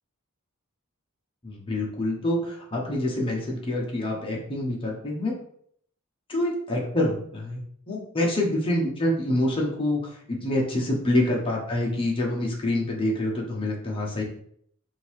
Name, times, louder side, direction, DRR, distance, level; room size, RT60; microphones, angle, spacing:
voice 1, 1.4-5.4 6.3-14.2, left 1 dB, 25° left, -2 dB, 1.0 m, -26 dB
3.8 x 2.7 x 4.6 m, 0.63 s
head